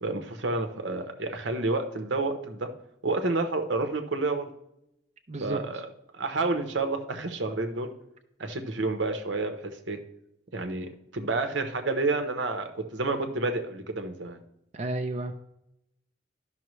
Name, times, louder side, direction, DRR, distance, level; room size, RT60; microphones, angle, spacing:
voice 1, 0.0-2.7 3.0-4.5 5.4-5.9 6.1-7.9 8.4-10.0 10.5-14.4, right 3 dB, 85° right, 6 dB, 0.9 m, -29 dB
voice 2, 5.3-5.6 14.7-15.3, right 2 dB, 40° right, 5 dB, 0.5 m, -31 dB
12.5 x 5.6 x 3.1 m, 0.82 s
head